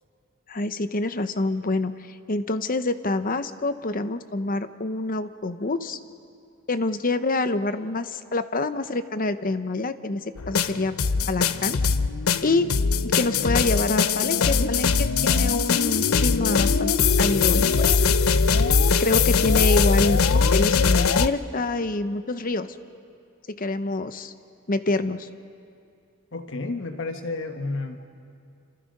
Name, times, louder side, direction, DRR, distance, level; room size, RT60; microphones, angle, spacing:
voice 1, 0.5-6.0 6.7-10.9 11.2-11.8 12.4-12.7 13.0-18.0 19.0-22.7 23.5-24.3 24.7-25.3, left 2 dB, 40° left, 11 dB, 0.8 m, -26 dB
sound 1, 10.4-21.3, left 5 dB, 75° left, 0.6 m, -21 dB
voice 2, 26.3-28.0, left 2 dB, 60° left, 6 dB, 1.3 m, -31 dB
28.0 x 26.5 x 5.4 m, 2.5 s
head